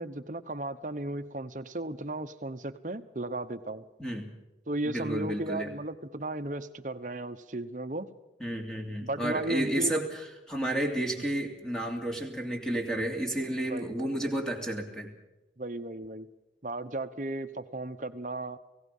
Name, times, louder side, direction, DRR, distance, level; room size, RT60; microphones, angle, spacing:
voice 1, 0.0-3.8 4.7-8.1 9.0-9.9 13.7-14.3 15.6-16.3 16.6-18.6, right 2 dB, 45° right, 10 dB, 1.1 m, -35 dB
voice 2, 4.8-5.7 8.4-10.2 10.5-15.1, right 1 dB, 5° left, 2 dB, 2.9 m, -31 dB
29.0 x 17.0 x 5.6 m, 1.0 s
head